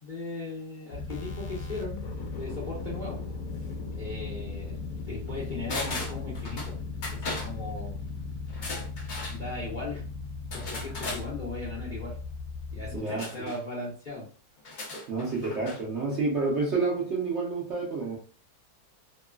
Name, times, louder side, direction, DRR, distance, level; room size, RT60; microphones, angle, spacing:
voice 1, 0.0-2.0 2.3-3.2 3.9-4.7 5.1-6.8 7.1-8.0 9.3-10.1 10.5-12.2 12.7-14.3, left 2 dB, 45° left, -6 dB, 0.7 m, -38 dB
sound 1, 0.9-13.0, left 3 dB, 70° left, 1.0 m, -37 dB
sound 2, 5.7-6.7 7.0-7.5 8.5-9.4 10.5-11.2 13.2-13.6 14.6-15.8 16.1-16.2, left 2 dB, 90° left, 0.4 m, -36 dB
voice 2, 12.9-13.5 15.1-18.2, right 3 dB, 55° right, -4 dB, 0.8 m, -29 dB
3.0 x 2.3 x 2.3 m, 0.39 s
omnidirectional pair, 1.8 m